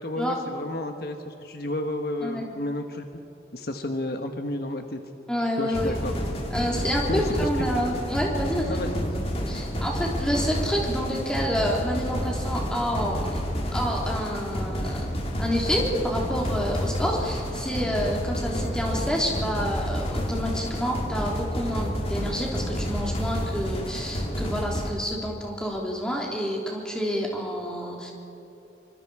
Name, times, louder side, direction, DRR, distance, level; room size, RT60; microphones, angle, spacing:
voice 1, 0.0-3.0 3.5-5.0 5.6-6.1 7.1-7.7 8.6-9.2, left 1 dB, 55° left, 5 dB, 1.2 m, -31 dB
voice 2, 5.3-5.9 6.5-8.8 9.5-13.4 13.7-15.1 15.4-28.1, equal, 5° left, -2 dB, 3.2 m, -28 dB
sound 1, 5.7-24.9, equal, 30° left, 2.3 m, -30 dB
26.0 x 24.5 x 4.8 m, 2.9 s
head